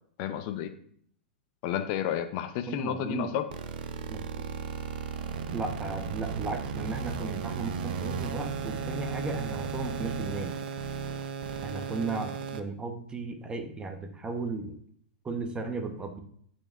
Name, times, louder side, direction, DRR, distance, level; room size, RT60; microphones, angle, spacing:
voice 1, 0.2-0.7 1.6-3.4, left 10 dB, 50° left, 9 dB, 0.6 m, -31 dB
voice 2, 2.7-3.3 4.1-4.2 5.5-10.6 11.6-14.8 15.2-16.2, right 3 dB, 15° right, 5 dB, 1.0 m, -35 dB
sound 1, 3.5-12.6, right 6 dB, 65° right, 0.7 m, -35 dB
11.5 x 4.4 x 2.5 m, 0.62 s
hypercardioid pair, 120°, 5 cm